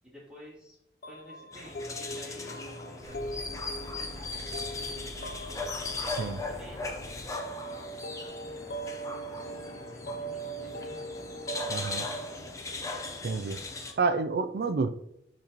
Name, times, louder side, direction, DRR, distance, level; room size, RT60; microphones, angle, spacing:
voice 1, 0.0-0.8 1.1-5.7 6.3-9.6 9.9-11.0, equal, 5° right, 2.8 m, -52 dB
sound 1, 1.0-13.6, right 2 dB, 55° left, 0.6 m, -41 dB
sound 2, 1.5-13.9, left 3 dB, 20° left, 0.7 m, -38 dB
sound 3, 3.0-7.3 8.2-8.3, equal, 85° right, 1.1 m, -46 dB
voice 2, 11.7-12.1 13.2-13.6 14.0-14.9, right 4 dB, 60° right, 0.4 m, -29 dB
10.5 x 4.1 x 2.9 m
head